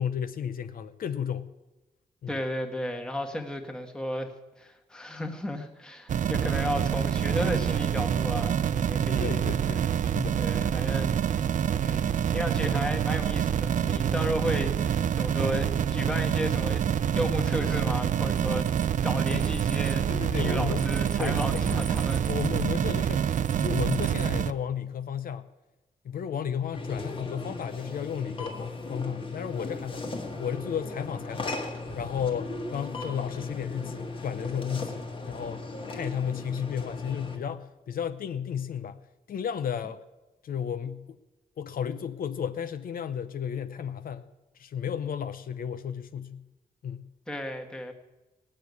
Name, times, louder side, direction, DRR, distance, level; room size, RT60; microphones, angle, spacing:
voice 1, 0.0-1.5 2.2-2.4 9.2-10.4 14.0-14.1 19.3-19.4 20.1-20.9 21.2-21.9 22.3-23.3 23.6-25.5 26.0-30.1 30.4-31.6 31.9-39.0 39.3-40.0 40.4-41.2 41.6-44.3 44.6-46.5 46.8-47.1, left 8 dB, 80° left, 0.7 m, -33 dB
voice 2, 2.3-4.3 4.6-9.4 10.4-11.3 11.8-18.7 19.0-22.2 47.3-47.9, equal, 5° left, 1.4 m, -33 dB
sound 1, 6.1-24.5, right 8 dB, 60° right, 0.4 m, -26 dB
sound 2, 18.4-19.9 20.2-22.8 23.3-24.3, right 7 dB, 80° right, 1.3 m, -45 dB
sound 3, 26.7-37.4, left 3 dB, 35° left, 1.7 m, -37 dB
18.0 x 6.5 x 9.5 m
wide cardioid pair, 170°, 15 cm